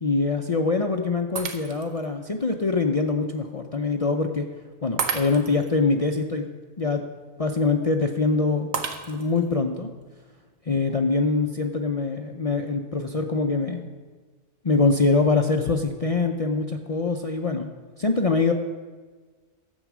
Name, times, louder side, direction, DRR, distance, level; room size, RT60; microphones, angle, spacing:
voice 1, 0.0-4.5 4.8-6.4 6.8-7.0 7.4-8.7 9.1-9.9 10.7-13.9 14.6-17.7 18.0-18.5, left 3 dB, 45° left, 4 dB, 0.5 m, -24 dB
Shatter, 1.4-2.1 2.6-2.7 5.0-5.7 8.7-9.5, right 6 dB, 80° right, 1.3 m, -31 dB
12.5 x 8.1 x 6.1 m, 1.4 s
omnidirectional pair, 1.4 m